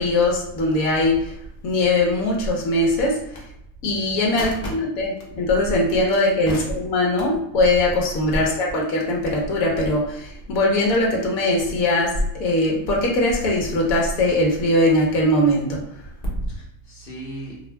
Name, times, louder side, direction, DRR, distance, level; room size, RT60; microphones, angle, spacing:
voice 1, 0.0-1.3 1.6-3.2 3.8-5.1 5.3-15.8, left 1 dB, 80° left, -2 dB, 1.1 m, -21 dB
voice 2, 4.4-4.7 6.5-6.6 16.2-17.7, right 1 dB, 35° left, -4 dB, 1.0 m, -31 dB
2.5 x 2.1 x 3.3 m, 0.76 s
cardioid pair, 165°, 49 cm